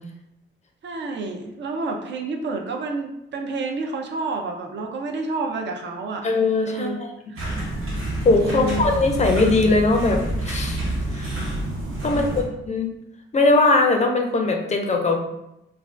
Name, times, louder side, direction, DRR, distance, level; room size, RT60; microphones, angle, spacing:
voice 1, 0.8-6.3 6.6-7.0 7.3-7.5 8.4-8.9 12.0-12.5, right 3 dB, 60° right, 3 dB, 0.5 m, -29 dB
voice 2, 6.2-7.1 8.2-10.8 11.1-11.4 12.0-12.9 13.3-15.2, left 3 dB, 35° left, 3 dB, 0.4 m, -20 dB
sound 1, 7.4-12.4, right 1 dB, 80° right, 1.1 m, -28 dB
2.5 x 2.2 x 3.1 m, 0.85 s
cardioid pair, 115°, 21 cm